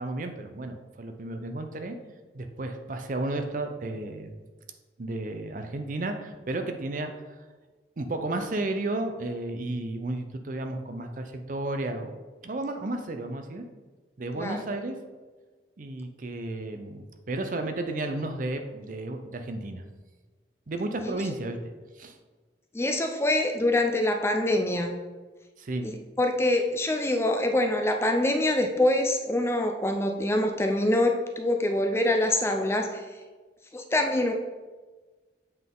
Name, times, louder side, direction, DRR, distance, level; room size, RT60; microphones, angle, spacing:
voice 1, 0.0-2.0 2.3-4.4 5.0-7.2 8.0-13.6 14.2-15.0 15.8-19.8 20.7-22.2 25.6-25.9, right 2 dB, 50° right, 6 dB, 0.5 m, -33 dB
voice 2, 22.7-25.0 25.8-33.0 33.7-34.3, left 1 dB, 15° left, 5 dB, 0.4 m, -25 dB
8.0 x 3.7 x 3.8 m, 1.3 s
head